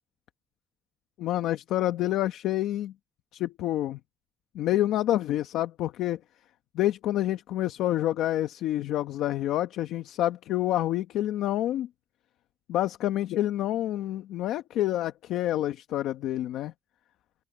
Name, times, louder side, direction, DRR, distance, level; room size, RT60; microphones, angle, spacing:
voice 1, 1.2-2.9 3.3-4.0 4.5-6.2 6.7-11.9 12.7-16.7, left 13 dB, 90° left, 1.1 m, -28 dB
open air
cardioid pair, 90°, 0 cm